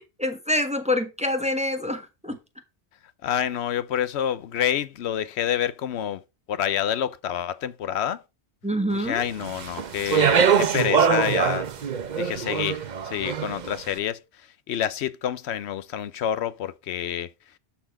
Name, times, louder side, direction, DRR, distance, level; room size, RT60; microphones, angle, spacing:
voice 1, 0.0-2.4 8.6-9.3, left 1 dB, 5° right, 1.1 m, -26 dB
voice 2, 3.2-6.2 6.5-8.2 8.9-11.7 12.2-12.8 13.0-14.2 14.7-17.3, left 10 dB, 80° left, 0.9 m, -28 dB
Speech, 9.4-13.7, right 7 dB, 50° right, 0.8 m, -23 dB
11.5 x 4.3 x 4.7 m
omnidirectional pair, 1.1 m